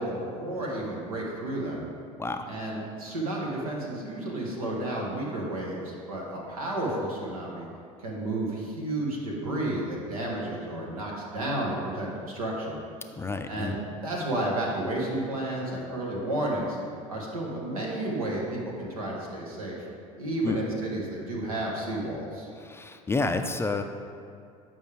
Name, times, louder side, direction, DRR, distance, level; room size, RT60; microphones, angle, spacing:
voice 1, 0.0-1.8 2.5-7.7 8.0-12.8 13.5-16.8 17.1-19.9 20.2-22.5, right 1 dB, 85° right, -2 dB, 1.4 m, -32 dB
voice 2, 13.2-13.8 20.4-20.6 22.6-23.8, left 3 dB, 15° left, 6 dB, 0.4 m, -29 dB
9.1 x 5.3 x 3.4 m, 2.4 s
hypercardioid pair, 70°, 18 cm